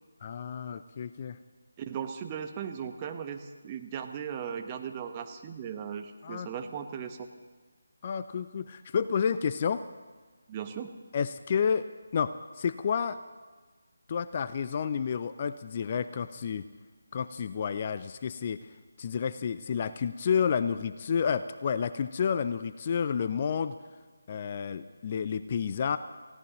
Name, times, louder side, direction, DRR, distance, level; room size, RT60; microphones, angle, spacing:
voice 1, 0.2-1.4 6.2-6.5 8.0-9.8 11.1-11.9 12.1-13.2 14.1-16.6 17.1-18.7 19.0-23.7 24.3-26.0, left 7 dB, 35° left, 13 dB, 0.5 m, -30 dB
voice 2, 1.8-7.3 10.5-10.9, right 8 dB, 20° right, 5 dB, 1.1 m, -37 dB
28.5 x 16.5 x 3.0 m, 1.4 s
figure-of-eight pair, 155°, 0 cm